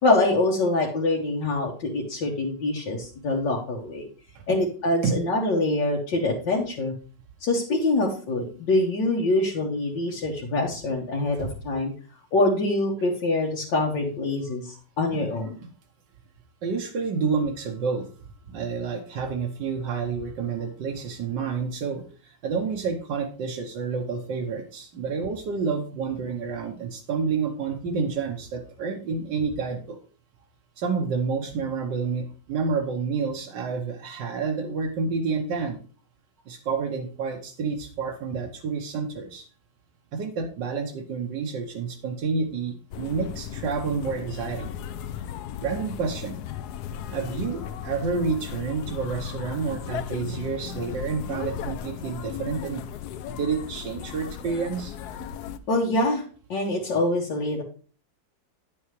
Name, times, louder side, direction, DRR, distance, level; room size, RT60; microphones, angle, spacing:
voice 1, 0.0-4.1 4.5-6.9 7.4-11.9 12.3-15.5 55.7-56.2 56.5-57.6, left 2 dB, 90° left, -3 dB, 1.9 m, -25 dB
voice 2, 16.6-18.1 18.5-30.0 30.8-35.8 36.5-39.5 40.1-44.7 45.6-46.4 47.1-52.8 53.3-54.9, right 5 dB, 85° right, 2 dB, 1.6 m, -29 dB
sound 1, 42.9-55.6, left 9 dB, 75° left, 1.0 m, -36 dB
9.5 x 7.0 x 3.2 m, 0.40 s
omnidirectional pair, 1.9 m